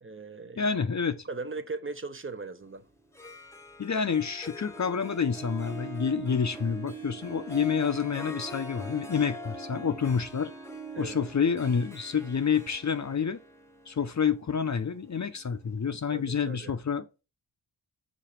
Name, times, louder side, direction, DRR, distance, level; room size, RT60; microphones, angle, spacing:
voice 1, 0.0-0.7 1.3-2.8 10.9-11.2 16.1-16.7, right 3 dB, 25° right, 0.8 m, -38 dB
voice 2, 0.6-1.2 3.8-10.5 11.0-13.4 13.9-17.2, left 6 dB, 40° left, 0.7 m, -28 dB
Harp, 3.0-15.9, right 2 dB, 5° left, 1.1 m, -43 dB
5.1 x 3.8 x 5.8 m
cardioid pair, 70°, 47 cm